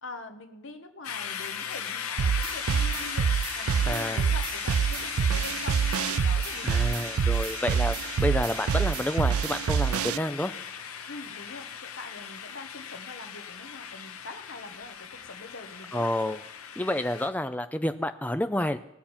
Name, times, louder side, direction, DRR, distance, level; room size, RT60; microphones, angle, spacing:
voice 1, 0.0-3.3 3.6-6.8 11.1-16.1, left 3 dB, 60° left, 6 dB, 1.1 m, -44 dB
sound 1, 1.0-17.3, left 7 dB, 90° left, 0.9 m, -37 dB
sound 2, 2.2-10.2, right 7 dB, 90° right, 0.4 m, -27 dB
voice 2, 3.9-4.2 6.6-10.5 15.9-16.4 16.8-18.8, left 1 dB, 5° left, 9 dB, 0.5 m, -29 dB
20.0 x 7.2 x 4.4 m, 0.87 s
head